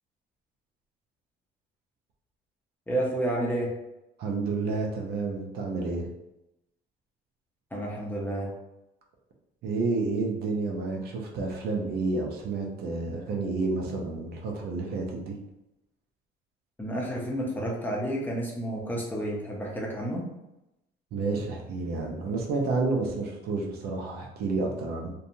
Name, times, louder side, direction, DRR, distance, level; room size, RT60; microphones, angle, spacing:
voice 1, 2.9-3.7 7.7-8.5 16.8-20.2, right 1 dB, 10° left, -3 dB, 0.7 m, -30 dB
voice 2, 4.2-6.1 9.6-15.4 21.1-25.1, right 3 dB, 70° right, 0 dB, 0.6 m, -30 dB
2.7 x 2.3 x 2.6 m, 0.93 s
cardioid pair, 110°, 17 cm